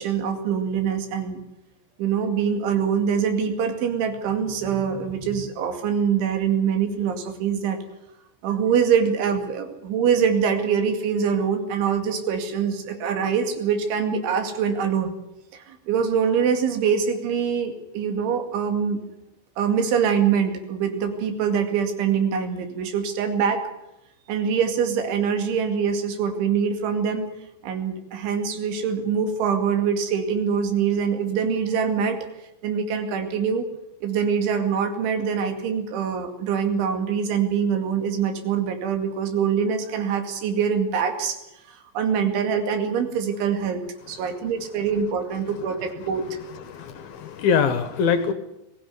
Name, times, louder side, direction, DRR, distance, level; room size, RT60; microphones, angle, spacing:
voice 1, 0.0-1.4 2.0-7.8 8.4-15.2 15.5-19.0 19.6-23.7 24.3-27.3 27.6-32.3 32.6-33.7 34.0-41.4 41.7-46.4, right 7 dB, 85° right, 7 dB, 4.7 m, -24 dB
voice 2, 44.1-44.4 46.5-48.3, left 6 dB, 65° left, 10 dB, 2.6 m, -24 dB
21.5 x 16.0 x 9.5 m, 0.90 s
omnidirectional pair, 5.3 m